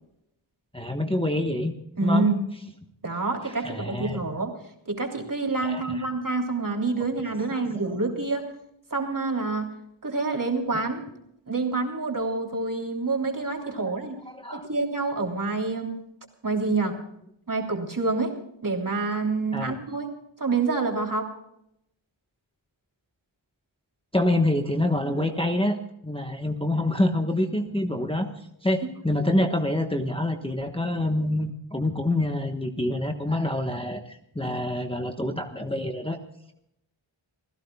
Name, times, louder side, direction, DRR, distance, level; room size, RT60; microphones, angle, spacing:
voice 1, 0.7-1.7 2.0-2.3 3.6-4.2 5.6-6.1 7.5-7.6 13.6-13.8 14.3-14.7 19.5-19.7 24.1-25.8 26.0-28.3 28.6-36.2, left 1 dB, 10° left, 3 dB, 1.3 m, -26 dB
voice 2, 2.0-2.4 3.0-4.5 4.8-8.5 8.9-9.7 10.0-11.1 11.5-14.2 14.5-16.0 16.4-17.0 17.5-18.4 18.6-20.1 20.4-21.3, right 3 dB, 40° right, 0 dB, 3.3 m, -27 dB
29.0 x 16.0 x 2.3 m, 0.78 s
wide cardioid pair, 60°, 48 cm